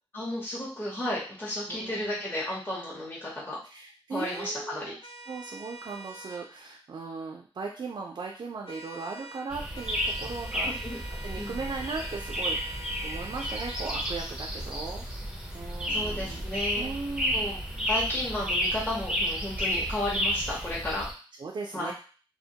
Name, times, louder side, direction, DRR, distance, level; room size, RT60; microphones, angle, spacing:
voice 1, 0.1-3.6 4.1-4.9 10.6-11.0 11.4-11.6 15.9-16.9 17.3-21.0 21.7-21.9, left 1 dB, 20° left, -6 dB, 0.8 m, -33 dB
voice 2, 1.7-2.2 3.7-5.0 5.3-10.7 11.1-15.1 15.5-16.5 16.7-17.6 21.4-21.9, right 4 dB, 60° right, -1 dB, 0.4 m, -38 dB
sound 1, 4.2-4.5 5.0-6.4 8.6-9.4 9.7-13.9, right 2 dB, 80° left, 0.4 m, -45 dB
sound 2, 9.5-21.1, equal, 5° right, 0.5 m, -32 dB
2.2 x 2.1 x 2.7 m, 0.37 s
wide cardioid pair, 80°, 9 cm